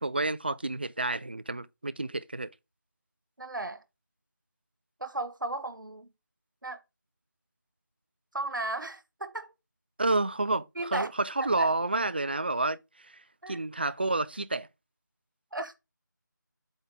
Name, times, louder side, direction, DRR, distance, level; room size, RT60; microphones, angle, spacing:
voice 1, 0.0-2.5 10.0-12.8 13.5-14.7, right 2 dB, 30° right, 0.4 m, -29 dB
voice 2, 3.4-3.8 5.0-6.1 6.6-6.8 8.3-9.5 10.7-11.1 11.6-11.7 13.4-13.6 15.5-15.7, right 2 dB, 75° right, 1.4 m, -35 dB
8.0 x 3.6 x 4.9 m
figure-of-eight pair, 165°, 11 cm